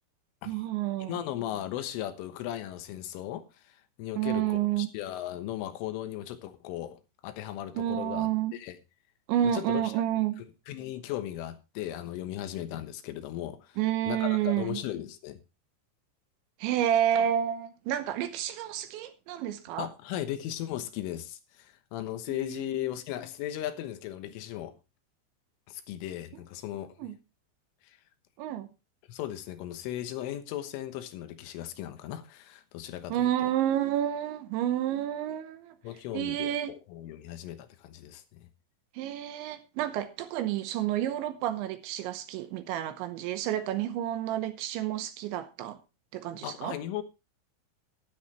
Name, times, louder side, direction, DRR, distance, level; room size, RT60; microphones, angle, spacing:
voice 1, 0.5-1.2 4.2-4.9 7.8-8.5 9.3-10.4 13.8-14.8 16.6-19.9 22.3-22.9 27.0-27.2 28.4-28.7 33.1-35.8 36.1-36.7 38.9-45.8 46.1-46.8, right 11 dB, 80° right, 3.0 m, -30 dB
voice 2, 1.0-8.8 9.5-9.9 10.7-13.8 14.1-15.4 19.8-24.7 25.7-27.1 27.8-28.0 29.1-33.3 35.8-38.5 46.4-47.0, left 12 dB, 80° left, 3.6 m, -37 dB
13.0 x 12.0 x 3.1 m
omnidirectional pair, 5.8 m